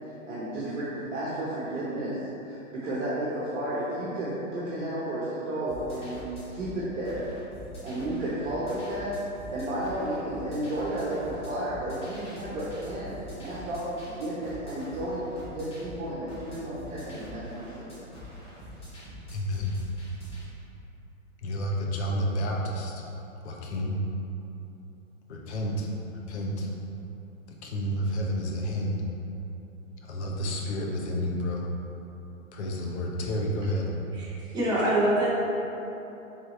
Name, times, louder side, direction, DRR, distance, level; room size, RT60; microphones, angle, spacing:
voice 1, 0.3-2.2 2.5-6.1 6.5-7.2 7.8-9.1 9.5-15.2 15.5-18.0, right 1 dB, 60° right, -8 dB, 1.1 m, -32 dB
sound 1, 5.7-20.4, equal, 15° left, 1.2 m, -44 dB
voice 2, 19.3-19.8 21.4-23.0 23.4-24.0 25.3-26.7 27.6-29.0 30.0-31.7 32.5-33.9, equal, 50° left, -1 dB, 0.8 m, -30 dB
voice 3, 34.1-35.3, right 1 dB, 10° right, -9 dB, 0.7 m, -25 dB
4.6 x 3.4 x 3.1 m, 3.0 s
hypercardioid pair, 140°, 42 cm